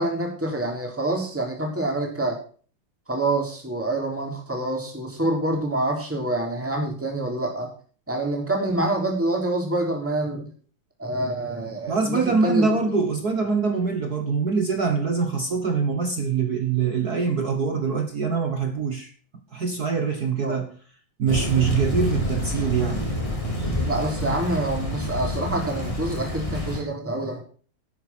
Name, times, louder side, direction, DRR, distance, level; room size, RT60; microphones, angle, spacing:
voice 1, 0.0-2.4 3.1-7.7 8.1-10.5 11.0-12.7 20.4-20.6 23.8-27.4, right 1 dB, 5° right, 3.3 m, -26 dB
voice 2, 11.9-19.1 19.5-20.7 21.2-23.1, right 5 dB, 55° right, 1.0 m, -24 dB
Thunder / Rain, 21.3-26.8, left 1 dB, 10° left, 2.7 m, -28 dB
11.5 x 9.0 x 6.1 m
omnidirectional pair, 3.4 m